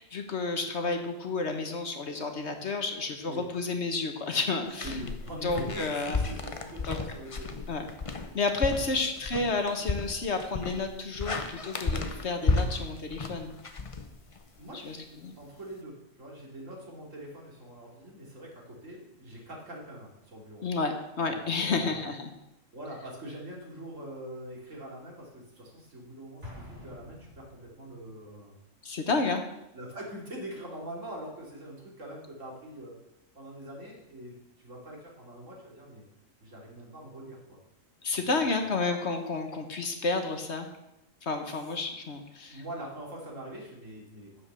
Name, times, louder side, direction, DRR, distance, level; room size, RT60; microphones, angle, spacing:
voice 1, 0.0-5.0 5.4-6.2 6.8-7.0 7.7-7.8 8.3-13.5 14.8-15.0 15.2-15.3 20.6-22.3 28.8-29.4 38.0-40.7 41.2-42.6, left 3 dB, 55° left, 5 dB, 1.5 m, -31 dB
voice 2, 3.3-3.7 4.8-7.6 8.7-9.1 14.6-20.6 21.2-22.0 22.7-28.6 29.7-33.0 33.3-36.1 36.4-37.6 38.1-38.6 42.5-44.3, right 1 dB, 70° right, -3 dB, 3.3 m, -43 dB
sound 1, 4.7-14.6, left 3 dB, 30° left, 0.7 m, -33 dB
Explosion, 26.4-28.0, left 1 dB, 40° right, 3.8 m, -47 dB
9.4 x 7.6 x 6.9 m, 0.88 s
omnidirectional pair, 1.4 m